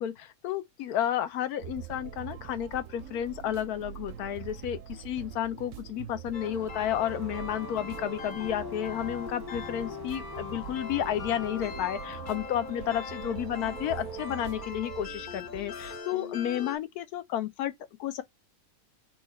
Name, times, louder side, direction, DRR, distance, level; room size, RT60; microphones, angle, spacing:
voice 1, 0.0-17.7 18.0-18.2, left 11 dB, 75° left, 1.1 m, -32 dB
sound 1, 1.6-16.0, right 12 dB, 70° right, 0.8 m, -44 dB
sound 2, 6.3-16.8, left 4 dB, 50° left, 0.6 m, -41 dB
sound 3, 6.4-14.7, right 2 dB, 30° right, 0.4 m, -48 dB
4.4 x 2.4 x 4.1 m
omnidirectional pair, 1.7 m